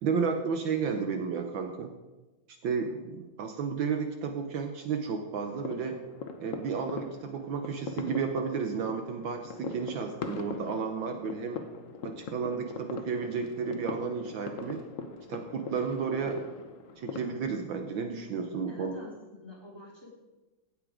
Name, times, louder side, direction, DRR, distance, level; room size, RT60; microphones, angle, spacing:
voice 1, 0.0-1.9 2.6-6.0 6.4-11.6 12.0-14.8 15.3-16.4 17.0-18.9, right 6 dB, 70° right, 6 dB, 1.5 m, -32 dB
sound 1, 5.4-17.4, left 5 dB, 50° left, 1.0 m, -41 dB
voice 2, 18.7-20.1, left 1 dB, 10° left, -4 dB, 3.0 m, -47 dB
16.5 x 7.4 x 5.0 m, 1.1 s
omnidirectional pair, 2.3 m